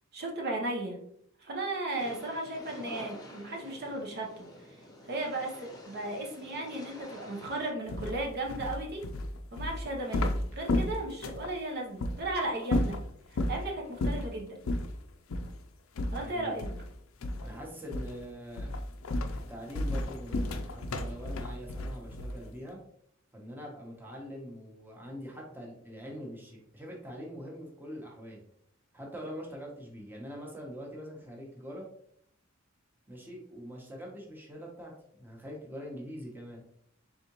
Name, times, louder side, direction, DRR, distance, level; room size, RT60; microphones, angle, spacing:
voice 1, 0.1-1.0 1.4-4.3 4.6-4.8 5.1-9.0 9.5-13.0 13.3-14.6 16.1-16.7, right 2 dB, 50° right, 0 dB, 0.8 m, -35 dB
sound 1, 2.0-7.7, left 1 dB, 20° left, 0.8 m, -48 dB
sound 2, 7.9-11.5 12.0-12.2 12.6-13.6 14.0-14.3 14.6-14.9 15.3-15.5 16.0-16.9 17.2-17.6 17.9-18.2 18.6-22.5, left 1 dB, 80° left, 0.4 m, -32 dB
voice 2, 16.1-16.7 17.4-18.7 19.5-22.8 23.3-28.4 28.9-31.8 33.1-36.6, equal, 10° right, -2 dB, 0.9 m, -43 dB
4.2 x 3.6 x 2.9 m, 0.68 s
head